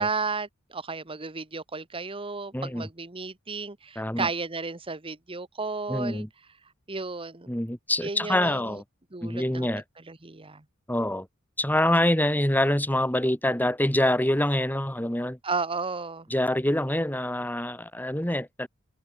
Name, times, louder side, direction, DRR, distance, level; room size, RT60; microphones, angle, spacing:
voice 1, 0.0-6.3 6.9-7.5 8.0-8.8 9.1-9.7 10.1-10.6 15.4-16.3, right 4 dB, 25° right, 1.3 m, -33 dB
voice 2, 2.5-2.9 4.0-4.3 5.9-6.3 7.5-8.8 9.2-9.8 10.9-11.3 11.6-15.4 16.3-18.7, left 1 dB, 10° left, 2.7 m, -25 dB
head